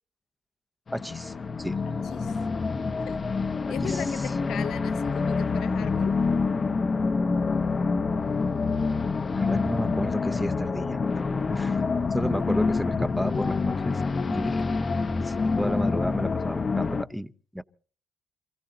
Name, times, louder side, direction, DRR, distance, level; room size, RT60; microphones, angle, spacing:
sound 1, 0.9-17.0, left 4 dB, 35° left, 0.8 m, -27 dB
voice 1, 0.9-1.8 3.7-4.0 9.3-11.0 11.5-11.8 12.1-14.0 14.3-14.7 15.2-17.6, equal, ahead, 0.7 m, -32 dB
voice 2, 1.8-2.4 3.1-3.2 3.7-6.1, left 9 dB, 75° left, 0.7 m, -38 dB
28.0 x 15.5 x 2.7 m
cardioid pair, 90°, 0 cm